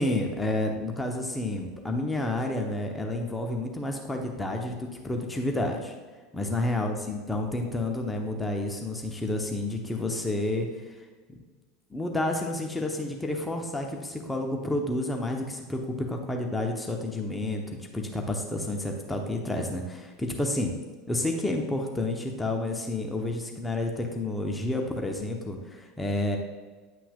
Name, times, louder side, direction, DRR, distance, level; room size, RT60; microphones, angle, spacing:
voice 1, 0.0-5.9 6.3-10.7 11.9-17.6 17.9-20.7 21.1-26.4, left 1 dB, 10° left, 2 dB, 0.9 m, -30 dB
9.6 x 5.9 x 2.4 m, 1.4 s
figure-of-eight pair, 75°, 0 cm